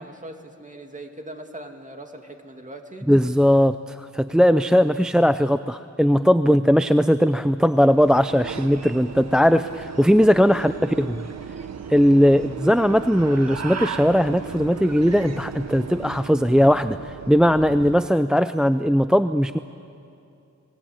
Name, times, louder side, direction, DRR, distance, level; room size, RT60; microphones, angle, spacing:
voice 1, 0.0-3.1 4.5-4.7 10.6-11.0 12.2-12.4, right 1 dB, 25° right, 3 dB, 2.6 m, -41 dB
voice 2, 3.1-11.2 11.9-19.6, equal, ahead, 11 dB, 0.5 m, -19 dB
sound 1, 7.7-16.4, right 5 dB, 55° right, 1.4 m, -40 dB
sound 2, 8.3-18.1, right 7 dB, 75° right, 0.8 m, -38 dB
28.0 x 19.5 x 8.8 m, 2.7 s
wide cardioid pair, 75°, 30 cm